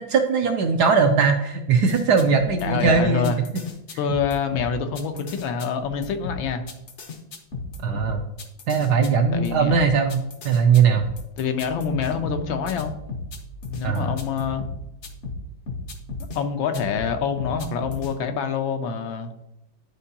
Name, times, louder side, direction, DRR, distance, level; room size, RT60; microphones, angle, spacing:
voice 1, 0.0-3.3 7.8-8.2 8.7-11.1 13.8-14.1, right 5 dB, 70° right, 4 dB, 1.0 m, -20 dB
sound 1, 1.9-16.4 16.7-18.1, left 3 dB, 55° left, 0.8 m, -35 dB
voice 2, 2.6-3.4 4.0-6.6 9.0-9.8 11.4-12.9 13.7-14.7 16.3-19.3, left 6 dB, 80° left, 7 dB, 1.4 m, -26 dB
11.0 x 4.5 x 2.8 m, 0.87 s
omnidirectional pair, 2.2 m